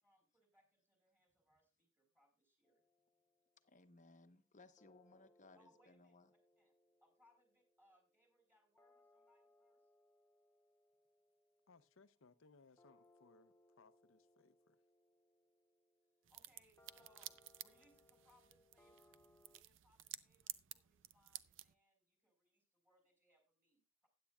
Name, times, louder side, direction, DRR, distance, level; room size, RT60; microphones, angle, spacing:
voice 1, 0.0-2.8 5.5-6.1 6.6-6.7 7.0-9.9 16.3-19.2 19.5-24.1, equal, 10° right, 4.7 m, -75 dB
sound 1, 2.6-4.0 4.8-19.6, left 2 dB, 15° left, 0.6 m, -73 dB
voice 2, 3.6-6.3, left 2 dB, 40° left, 1.0 m, -64 dB
voice 3, 11.7-14.8, left 4 dB, 70° left, 0.7 m, -68 dB
sound 2, 16.2-21.7, right 14 dB, 65° right, 0.5 m, -54 dB
15.5 x 10.5 x 2.4 m
head